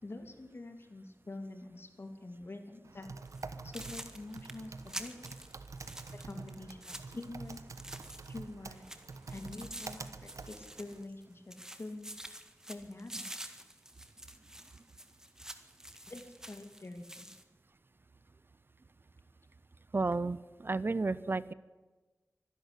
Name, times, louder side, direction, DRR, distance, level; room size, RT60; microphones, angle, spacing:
voice 1, 0.0-3.1 3.6-5.2 6.1-7.6 8.3-8.9 9.3-12.1 12.7-13.3 16.1-17.3, left 2 dB, 50° left, 6 dB, 2.7 m, -46 dB
Typing, 2.8-11.0, right 4 dB, 85° right, 1.2 m, -47 dB
sound 1, 3.3-3.4 3.7-8.5 8.8-11.2 11.5-17.4, right 1 dB, 10° right, 1.7 m, -48 dB
voice 2, 19.9-21.5, right 3 dB, 45° right, 18 dB, 0.6 m, -32 dB
24.5 x 11.5 x 10.0 m, 1.2 s
wide cardioid pair, 85°, 5 cm